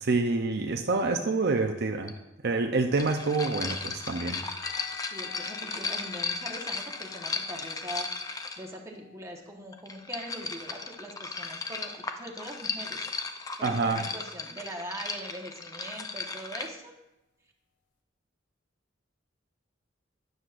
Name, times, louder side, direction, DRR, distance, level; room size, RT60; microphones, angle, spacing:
voice 1, 0.0-2.2 2.4-4.4 13.6-14.1, right 3 dB, 60° right, 4 dB, 0.6 m, -27 dB
sound 1, 2.1-2.2 2.9-8.8 9.7-16.7, left 4 dB, 20° left, 0.5 m, -36 dB
sound 2, 4.6-10.4 10.7-10.9 11.2-11.4 14.6-14.7, left 8 dB, 75° left, 1.2 m, -50 dB
voice 2, 5.0-8.3 8.6-13.1 13.6-16.9, right 1 dB, 15° right, 0 dB, 1.2 m, -42 dB
13.0 x 9.3 x 2.5 m, 0.91 s
head